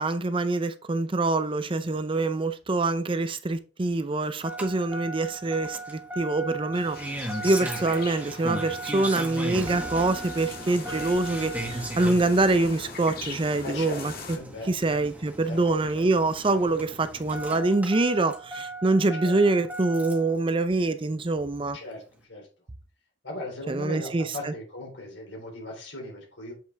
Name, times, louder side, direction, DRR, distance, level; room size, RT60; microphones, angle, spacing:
voice 1, 0.0-7.0 7.4-14.4 14.7-21.8 23.7-24.5, right 2 dB, 30° right, 0.5 m, -25 dB
Engine starting, 4.4-20.4 21.6-21.7, right 1 dB, 10° right, 1.5 m, -37 dB
sound 1, 6.7-14.4, left 4 dB, 55° left, 2.1 m, -41 dB
voice 2, 13.6-14.0 14.3-14.7 15.5-16.6 19.2-19.4 21.7-22.5 23.2-26.5, left 2 dB, 85° left, 3.7 m, -38 dB
7.6 x 6.0 x 3.4 m
head